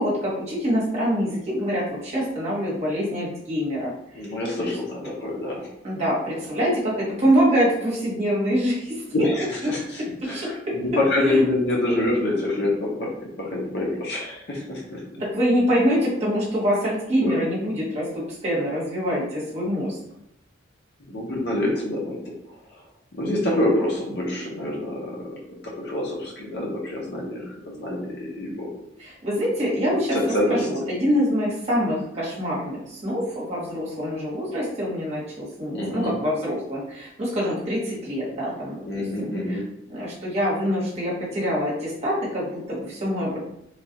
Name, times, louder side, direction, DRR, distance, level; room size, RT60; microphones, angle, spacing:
voice 1, 0.0-4.3 4.6-4.7 5.8-9.0 10.2-10.8 11.2-11.4 15.2-20.0 29.0-39.6 39.9-43.4, equal, 35° right, -6 dB, 1.0 m, -25 dB
voice 2, 4.1-5.7 9.1-13.1 13.4-15.0 17.2-17.3 21.1-22.2 22.7-22.8 23.1-25.4 25.6-28.7 30.1-30.7 35.7-36.2 38.9-39.6, left 1 dB, 60° left, -2 dB, 0.7 m, -26 dB
3.2 x 2.3 x 2.8 m, 0.80 s
head